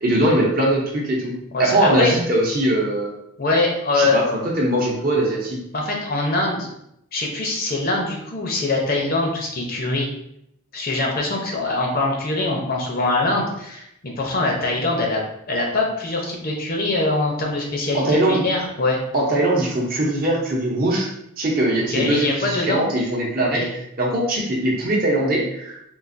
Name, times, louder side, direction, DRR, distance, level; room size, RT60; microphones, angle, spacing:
voice 1, 0.0-3.1 3.9-5.6 17.9-18.4 19.1-21.1 21.4-23.6 24.0-25.7, right 1 dB, 45° right, -2 dB, 0.7 m, -21 dB
voice 2, 1.5-2.1 3.4-4.2 5.7-6.7 7.1-10.1 10.7-15.2 15.5-19.0 21.9-22.8 23.4-23.7, left 2 dB, 45° left, 0 dB, 0.6 m, -23 dB
3.8 x 2.5 x 2.5 m, 0.78 s
head